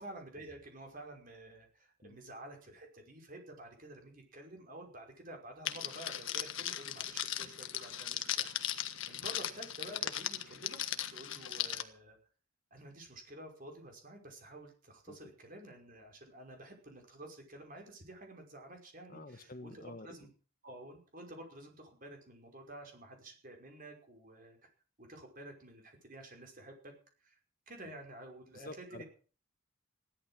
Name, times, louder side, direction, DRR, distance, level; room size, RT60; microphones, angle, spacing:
voice 1, 0.0-8.6 9.1-10.8 11.1-12.2 12.7-20.3 20.6-24.6 25.0-26.9 27.2-27.4 27.7-29.0, right 1 dB, 40° right, 3 dB, 5.4 m, -50 dB
Crackle, 5.7-11.8, left 11 dB, 65° left, 1.6 m, -38 dB
voice 2, 19.1-20.1 28.5-29.0, left 2 dB, 40° left, 9 dB, 1.5 m, -48 dB
16.0 x 12.5 x 6.3 m, 0.38 s
head